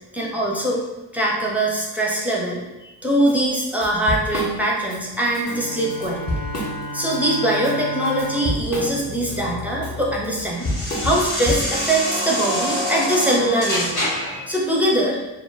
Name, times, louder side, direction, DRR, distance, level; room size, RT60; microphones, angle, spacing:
voice 1, 0.1-0.8 1.1-6.3 6.9-10.7 11.0-15.2, right 1 dB, 5° right, -3 dB, 0.6 m, -22 dB
Drum kit / Drum, 3.3-3.4 3.7-5.0 5.3-5.5 5.9-7.2 7.5-11.9, left 1 dB, 35° left, 0.8 m, -28 dB
Bowed string instrument, 5.4-10.2, equal, 65° left, 0.8 m, -33 dB
sound 1, 8.6-14.4, equal, 85° left, 1.2 m, -27 dB
2.1 x 2.0 x 3.3 m, 1.0 s
cardioid pair, 55°, 45 cm